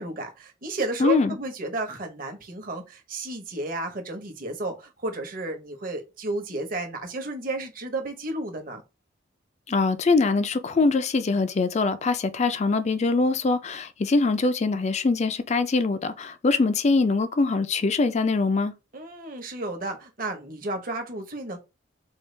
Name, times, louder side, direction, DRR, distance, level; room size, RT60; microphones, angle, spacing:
voice 1, 0.0-8.8 18.9-21.6, right 2 dB, 45° right, 1.0 m, -32 dB
voice 2, 1.0-1.4 9.7-18.7, left 3 dB, 35° left, 0.4 m, -23 dB
4.4 x 2.3 x 3.2 m
head